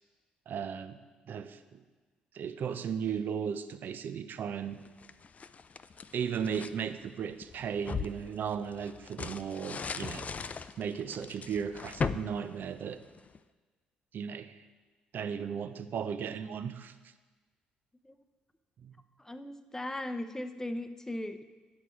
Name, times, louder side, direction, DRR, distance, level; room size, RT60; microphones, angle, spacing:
voice 1, 0.5-1.0 1.3-1.8 2.3-4.8 6.1-10.3 10.8-13.0 14.1-14.6 15.1-16.9 18.8-19.0, right 7 dB, 55° right, 11 dB, 0.6 m, -36 dB
sound 1, 4.8-6.8 7.3-13.4, left 5 dB, 40° left, 0.4 m, -39 dB
voice 2, 19.2-21.4, left 1 dB, 15° left, 10 dB, 0.7 m, -38 dB
9.6 x 6.1 x 4.5 m, 1.3 s
hypercardioid pair, 50°, 4 cm